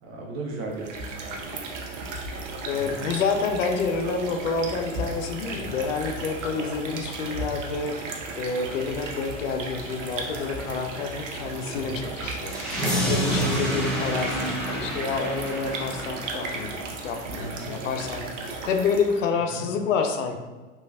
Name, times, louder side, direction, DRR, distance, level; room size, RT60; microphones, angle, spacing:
voice 1, 0.0-1.4 2.7-3.1 11.7-12.0 13.4-13.6 17.4-17.7 19.5-19.7, right 2 dB, 35° right, -1 dB, 0.7 m, -37 dB
sound 1, 0.7-19.3, right 3 dB, 70° right, 0.7 m, -35 dB
voice 2, 2.6-8.0 8.4-12.6 13.1-20.4, left 5 dB, 75° left, 5 dB, 0.5 m, -28 dB
sound 2, 12.4-17.4, equal, ahead, 0.7 m, -29 dB
3.0 x 2.3 x 2.5 m, 1.3 s
hypercardioid pair, 100°, 39 cm